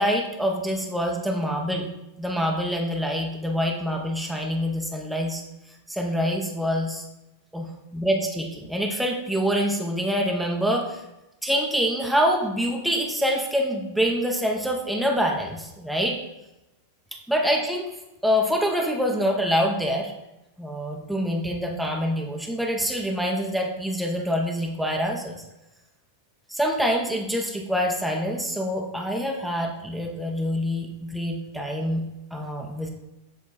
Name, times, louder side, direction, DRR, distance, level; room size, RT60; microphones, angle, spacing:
voice 1, 0.0-1.9 2.2-5.4 5.9-7.0 7.5-11.0 11.4-16.2 17.1-17.9 18.2-20.1 20.6-25.4 26.5-32.1 32.3-32.9, equal, ahead, 0 dB, 0.8 m, -26 dB
7.3 x 3.6 x 4.1 m, 0.95 s
hypercardioid pair, 110°, 0 cm